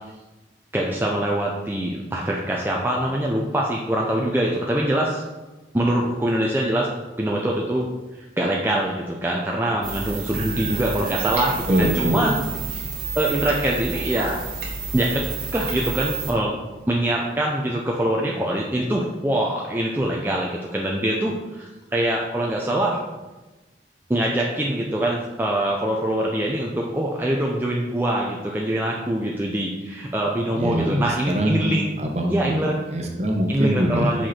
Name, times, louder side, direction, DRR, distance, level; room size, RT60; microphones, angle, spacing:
voice 1, 0.7-5.2 5.7-6.9 7.2-7.9 8.1-12.4 13.2-14.4 14.9-16.5 16.9-23.0 24.1-31.8 32.3-32.8 33.5-34.3, right 1 dB, 10° right, -2 dB, 0.5 m, -24 dB
sound 1, 9.8-16.3, right 5 dB, 60° right, 1.4 m, -30 dB
voice 2, 10.3-11.3 11.7-12.4 30.5-32.7 32.9-34.1, equal, 35° right, 2 dB, 0.9 m, -24 dB
5.8 x 5.2 x 4.3 m, 1.1 s
head